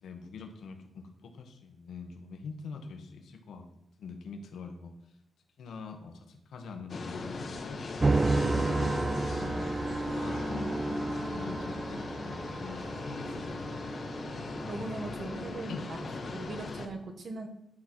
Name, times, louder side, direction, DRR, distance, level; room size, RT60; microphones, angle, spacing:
voice 1, 0.0-3.6 4.0-4.9 5.6-7.8 8.4-8.9 9.3-9.7 10.1-13.6 15.7-15.8, left 4 dB, 75° left, 5 dB, 1.4 m, -44 dB
sound 1, 6.9-16.9, left 3 dB, 40° left, 1.1 m, -39 dB
sound 2, 8.0-16.4, right 3 dB, 20° right, 0.3 m, -32 dB
Piano, 10.3-12.7, equal, 5° left, 1.4 m, -41 dB
voice 2, 14.7-16.0 16.3-17.5, right 3 dB, 45° right, 5 dB, 1.3 m, -39 dB
11.5 x 4.4 x 6.2 m, 0.83 s
wide cardioid pair, 150°, 0 cm